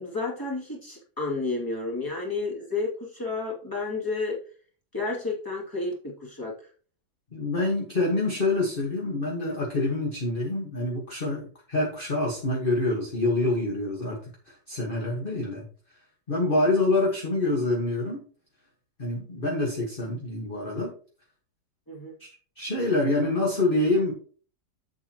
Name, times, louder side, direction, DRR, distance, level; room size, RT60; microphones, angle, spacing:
voice 1, 0.0-4.4 4.9-6.5 21.9-22.1, left 3 dB, 10° left, -3 dB, 2.5 m, -31 dB
voice 2, 7.3-14.2 14.5-15.7 16.3-18.2 19.0-20.9 22.2-22.3 22.6-24.1, left 2 dB, 35° left, -1 dB, 1.7 m, -26 dB
8.0 x 8.0 x 3.0 m, 0.41 s
omnidirectional pair, 1.8 m